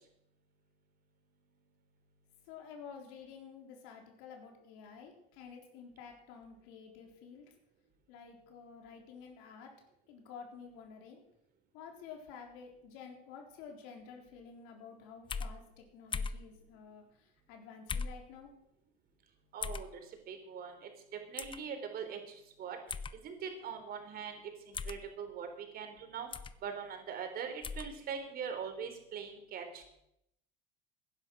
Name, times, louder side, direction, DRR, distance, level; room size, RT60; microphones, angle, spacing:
voice 1, 2.5-7.5 8.1-9.7 10.1-11.2 11.7-17.0 17.5-18.5, left 6 dB, 75° left, 2 dB, 4.0 m, -51 dB
sound 1, 15.3-15.5 16.1-16.4 17.9-18.2 19.6-19.9 21.4-21.6 22.9-23.1 24.7-25.0 26.3-26.6 27.6-27.9, left 5 dB, 25° left, 0.8 m, -38 dB
voice 2, 19.5-19.9 20.3-20.7 21.3-22.2 22.6-22.8 23.2-24.4 24.9-25.5 25.7-26.3 26.6-29.8, right 7 dB, 50° right, 6 dB, 3.7 m, -41 dB
16.5 x 10.5 x 6.1 m, 0.78 s
supercardioid pair, 105°, 20 cm